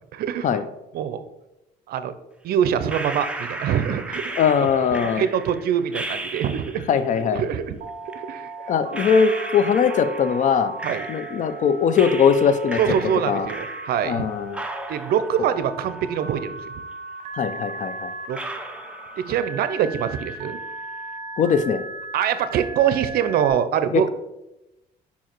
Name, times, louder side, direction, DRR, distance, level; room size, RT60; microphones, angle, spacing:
voice 1, 0.1-0.6 0.9-1.2 1.9-2.1 2.4-4.4 4.9-6.8 7.3-7.8 8.1-8.7 10.8-11.1 12.8-14.3 14.9-16.7 18.3-18.4 19.2-20.6 22.1-24.1, right 9 dB, 65° right, 12 dB, 0.6 m, -24 dB
sound 1, 2.9-7.0 8.1-8.2 8.9-11.6 11.9-14.2 14.5-16.6 16.9-17.0 17.7-17.8 18.3-19.7 19.9-20.5, right 2 dB, 5° right, 0.6 m, -35 dB
voice 2, 4.4-5.2 6.9-7.4 8.7-10.7 11.1-12.8 13.3-13.5 14.1-14.6 17.4-18.1 21.4-21.8 23.9-24.1, left 6 dB, 45° left, 11 dB, 0.6 m, -20 dB
Telephone, 7.8-23.5, right 3 dB, 45° right, 1.4 m, -37 dB
5.6 x 4.7 x 4.4 m, 0.92 s
cardioid pair, 110°, 17 cm